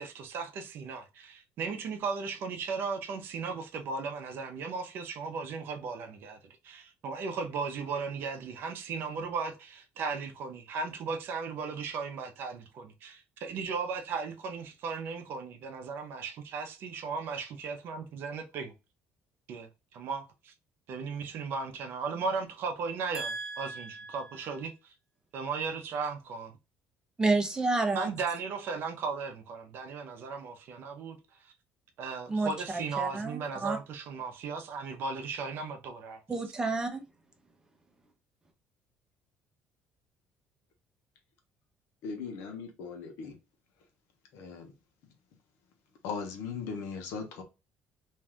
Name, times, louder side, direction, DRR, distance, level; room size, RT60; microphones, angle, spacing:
voice 1, 0.0-18.7 19.5-20.5 20.9-24.9 25.3-26.5 27.9-31.5 32.0-36.2, right 5 dB, 60° right, 0.6 m, -36 dB
voice 2, 23.1-24.2 27.2-28.1 32.3-33.8 36.3-37.0, right 3 dB, 15° right, 0.6 m, -30 dB
voice 3, 42.0-43.4 44.3-44.7 46.0-47.4, left 5 dB, 80° left, 0.9 m, -38 dB
2.6 x 2.4 x 3.3 m
cardioid pair, 140°, 4 cm